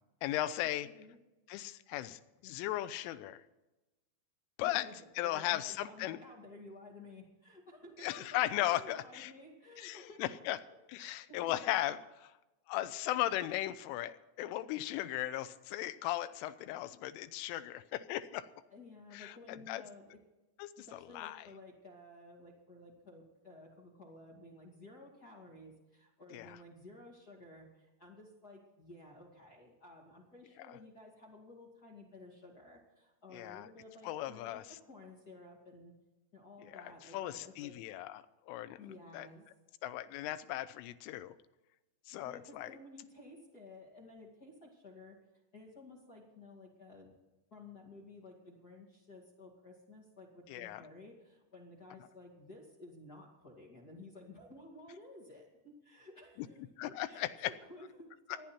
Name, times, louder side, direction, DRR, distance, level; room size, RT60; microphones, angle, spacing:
voice 1, 0.2-0.9 1.5-3.4 4.6-4.9 5.2-6.2 8.0-9.3 9.8-10.6 10.9-12.3 12.7-18.5 19.1-19.8 20.6-21.5 26.3-26.6 30.7-30.8 33.3-33.7 34.0-34.6 36.6-38.8 39.1-39.3 39.8-41.4 42.1-42.7 50.5-50.8 56.4-56.5 56.8-57.5, left 14 dB, 85° left, 13 dB, 3.1 m, -37 dB
voice 2, 4.6-10.4 11.0-11.6 18.7-20.2 20.8-35.9 36.3-37.7 38.8-39.4 42.2-45.2 45.5-47.1 47.5-58.5, left 2 dB, 35° left, -2 dB, 1.5 m, -54 dB
26.0 x 9.9 x 4.4 m, 1.0 s
omnidirectional pair, 5.8 m